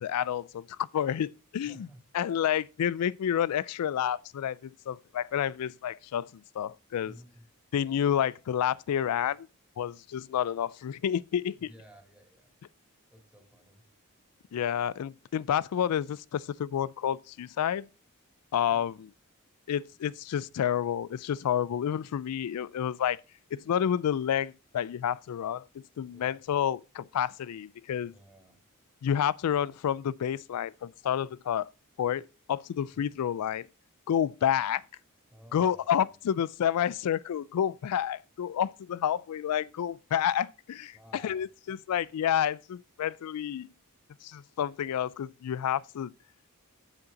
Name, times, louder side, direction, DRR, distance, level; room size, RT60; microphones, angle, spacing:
voice 1, 0.0-1.9 2.1-7.1 7.7-9.5 9.8-11.7 14.5-17.9 18.5-19.1 19.7-23.2 23.5-28.1 29.0-31.7 32.0-32.2 32.5-33.7 34.1-34.8 35.5-43.7 44.2-46.1, left 9 dB, 85° left, 0.3 m, -29 dB
voice 2, 1.6-2.0 7.0-7.5 11.6-12.5 13.1-13.8 18.7-18.9 26.1-26.4 28.0-28.6 32.9-33.0 35.3-36.1 40.9-41.4, equal, 5° right, 2.5 m, -54 dB
7.8 x 7.2 x 4.0 m
head